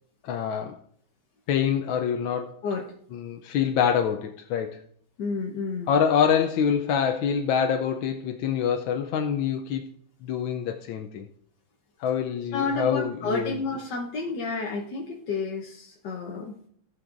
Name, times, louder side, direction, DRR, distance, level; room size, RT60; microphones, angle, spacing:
voice 1, 0.2-0.8 1.5-2.6 3.1-4.8 5.9-9.9 10.2-11.2 12.0-13.6, left 8 dB, 80° left, 1.4 m, -25 dB
voice 2, 2.6-2.9 5.2-6.0 12.5-16.6, left 4 dB, 65° left, 1.5 m, -30 dB
17.5 x 6.2 x 2.5 m
omnidirectional pair, 2.1 m